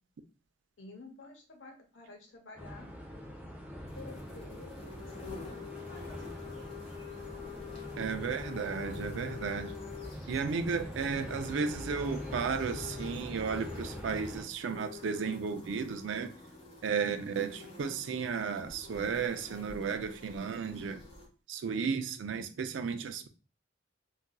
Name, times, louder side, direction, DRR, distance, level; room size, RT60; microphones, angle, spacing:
voice 1, 0.8-2.9 4.0-6.7, left 3 dB, 90° left, 0.9 m, -51 dB
sound 1, 2.6-14.4, equal, 10° right, 0.7 m, -44 dB
sound 2, 3.9-21.3, left 6 dB, 30° left, 1.0 m, -47 dB
voice 2, 8.0-9.7 10.3-16.3 16.8-21.0 21.5-23.3, right 5 dB, 80° right, 0.4 m, -34 dB
4.0 x 2.4 x 2.2 m
head